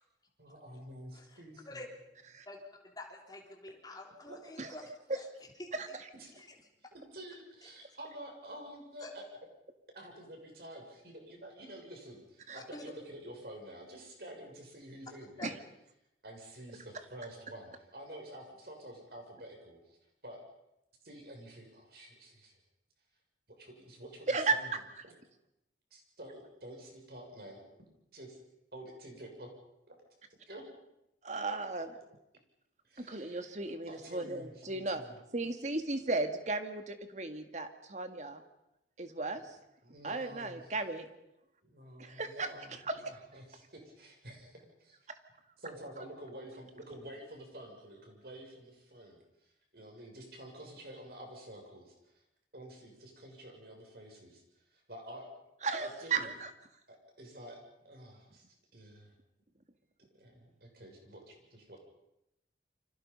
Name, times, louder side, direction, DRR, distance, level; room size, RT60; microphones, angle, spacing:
voice 1, 0.4-1.8 4.3-4.4 6.1-6.3 6.9-9.2 9.9-15.6 16.2-20.4 21.0-22.6 23.5-24.7 25.9-27.6 28.1-28.4 28.7-29.5 29.9-30.0 30.3-30.7 31.8-31.9 32.8-33.5 33.9-35.2 39.8-40.7 41.6-45.0 45.6-49.2 49.7-51.9 52.5-54.4 54.7-55.3 55.8-56.3 56.9-57.6 57.8-58.4 58.7-59.1 60.2-61.8, right 1 dB, 60° right, 2 dB, 6.9 m, -49 dB
voice 2, 1.1-1.9 2.5-5.3 5.6-6.0 6.4-6.5 9.0-9.1 12.7-12.8 15.4-15.5, left 2 dB, 20° left, 0 dB, 3.6 m, -48 dB
voice 3, 31.2-31.9 33.0-35.0 35.3-38.4 39.0-39.4 40.0-41.1 42.0-42.5 43.1-43.2 55.6-56.5, right 3 dB, 40° right, 7 dB, 2.0 m, -35 dB
29.0 x 25.5 x 5.6 m, 0.85 s
head